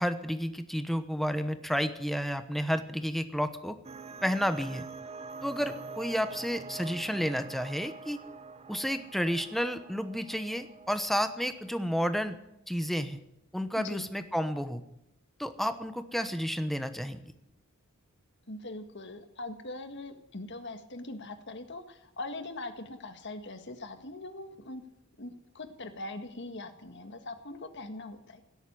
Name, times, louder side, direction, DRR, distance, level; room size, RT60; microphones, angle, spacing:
voice 1, 0.0-3.8 4.2-4.8 5.4-8.2 8.7-12.4 12.7-13.2 13.5-14.8 15.4-17.2, equal, ahead, 10 dB, 1.0 m, -31 dB
sound 1, 3.8-12.1, right 4 dB, 30° right, 0.8 m, -45 dB
voice 2, 13.8-14.1 18.5-24.8 25.2-28.4, left 2 dB, 55° left, 8 dB, 1.6 m, -41 dB
17.5 x 8.1 x 10.0 m, 0.85 s
head